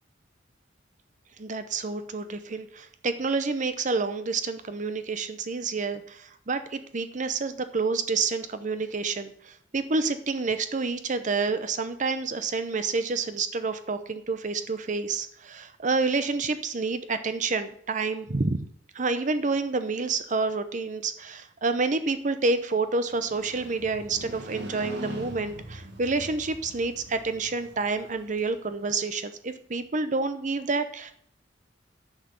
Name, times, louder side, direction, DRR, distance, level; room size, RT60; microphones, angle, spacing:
voice 1, 1.4-18.6 18.9-31.1, right 4 dB, 40° right, 10 dB, 0.7 m, -28 dB
Motorcycle, 22.9-28.9, right 2 dB, 65° right, 2.1 m, -43 dB
10.5 x 6.0 x 6.5 m, 0.66 s
head